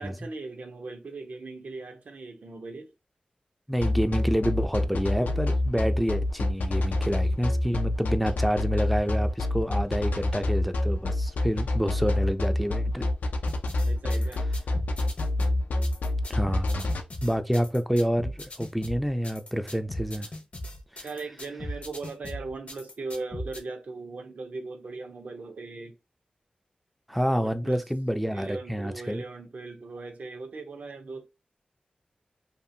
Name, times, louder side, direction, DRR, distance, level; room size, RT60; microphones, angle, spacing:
voice 1, 0.0-2.9 13.9-14.4 21.0-25.9 27.4-27.9 28.3-31.2, right 3 dB, 70° right, 0.6 m, -38 dB
voice 2, 3.7-13.1 16.3-16.9 17.2-20.3 20.9-21.1 27.1-29.2, equal, ahead, 0.3 m, -28 dB
sound 1, 3.8-17.0, left 2 dB, 90° left, 0.4 m, -26 dB
sound 2, 13.5-23.6, left 1 dB, 50° left, 0.7 m, -38 dB
2.7 x 2.4 x 2.6 m
wide cardioid pair, 70°, 3 cm